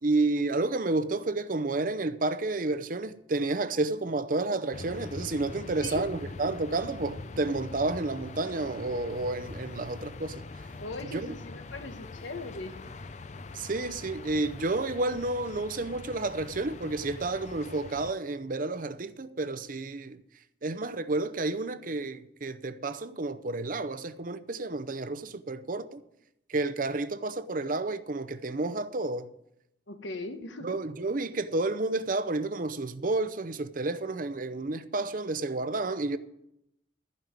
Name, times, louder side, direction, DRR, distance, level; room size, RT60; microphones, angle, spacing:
voice 1, 0.0-10.4 11.1-11.3 13.5-20.2 20.6-26.0 26.5-29.3 30.6-36.2, right 2 dB, 45° right, 0.6 m, -30 dB
sound 1, 4.7-18.1, left 3 dB, 40° left, 0.5 m, -43 dB
voice 2, 5.6-6.1 10.8-12.8 29.9-30.7, left 2 dB, 75° left, 1.2 m, -39 dB
14.5 x 5.5 x 9.3 m
head